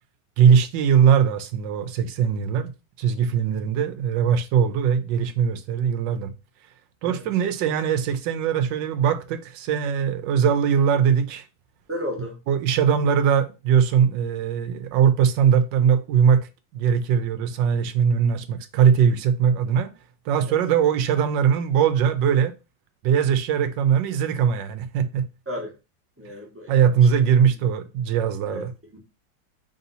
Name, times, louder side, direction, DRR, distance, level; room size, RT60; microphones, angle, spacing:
voice 1, 0.4-2.7 3.0-6.3 7.0-11.5 12.5-19.9 20.3-22.5 23.0-25.3 26.7-28.7, right 7 dB, 85° right, 1.3 m, -20 dB
voice 2, 11.9-12.4 20.4-20.6 25.5-25.7 26.2-26.8 27.2-27.3 28.5-29.0, equal, 10° right, 0.6 m, -34 dB
3.5 x 2.7 x 4.0 m
omnidirectional pair, 1.9 m